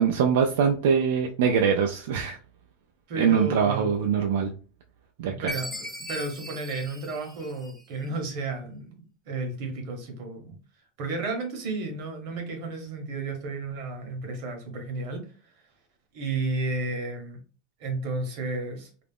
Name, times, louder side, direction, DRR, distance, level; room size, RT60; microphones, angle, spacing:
voice 1, 0.0-2.4 3.2-4.5 5.2-5.3, right 7 dB, 70° right, 3 dB, 0.3 m, -23 dB
voice 2, 3.1-4.0 5.3-10.5 11.0-15.5 16.1-17.4 17.8-18.9, right 3 dB, 50° right, 3 dB, 0.8 m, -33 dB
Chime, 5.5-8.0, equal, 5° right, 0.5 m, -38 dB
2.4 x 2.0 x 3.4 m, 0.37 s
supercardioid pair, 175°, 0 cm